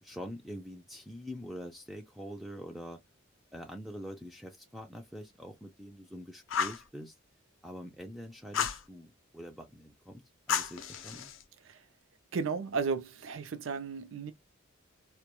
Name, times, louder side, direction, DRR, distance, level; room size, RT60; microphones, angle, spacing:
voice 1, 0.0-3.0 3.5-7.2 7.6-10.2 10.5-11.3, equal, ahead, 0.3 m, -45 dB
Fire, 6.5-6.9 8.5-8.8 10.5-11.4, left 7 dB, 70° left, 0.5 m, -32 dB
voice 2, 12.3-14.3, right 5 dB, 70° right, 0.5 m, -34 dB
2.2 x 2.1 x 2.9 m
head